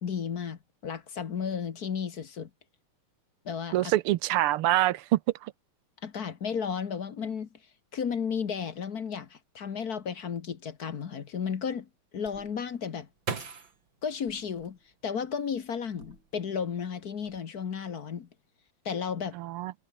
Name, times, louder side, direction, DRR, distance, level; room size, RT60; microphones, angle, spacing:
voice 1, 0.0-2.5 3.4-3.9 6.0-7.5 7.9-11.9 12.1-13.1 14.0-18.3 18.8-19.4, left 7 dB, 50° left, 1.7 m, -33 dB
voice 2, 3.7-5.5 19.3-19.7, right 15 dB, 85° right, 1.7 m, -26 dB
sound 1, 12.3-15.3 15.9-16.6 16.9-17.4, right 5 dB, 60° right, 3.3 m, -41 dB
omnidirectional pair, 2.4 m